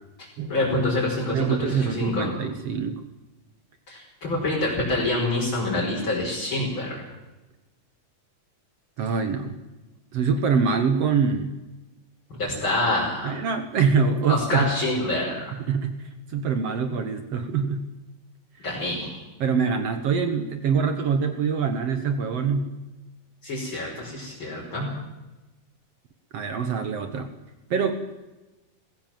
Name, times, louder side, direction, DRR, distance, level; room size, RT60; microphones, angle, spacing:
voice 1, 0.5-2.3 3.9-7.0 12.3-13.3 14.3-15.5 18.6-19.2 23.4-24.9, left 2 dB, 30° left, -4 dB, 6.0 m, -26 dB
voice 2, 1.3-3.0 9.0-9.6 10.1-11.5 13.2-14.7 15.7-17.8 19.4-22.7 26.3-27.3 27.7-28.0, right 5 dB, 60° right, 8 dB, 1.7 m, -24 dB
20.5 x 17.0 x 7.5 m, 1.1 s
omnidirectional pair, 4.5 m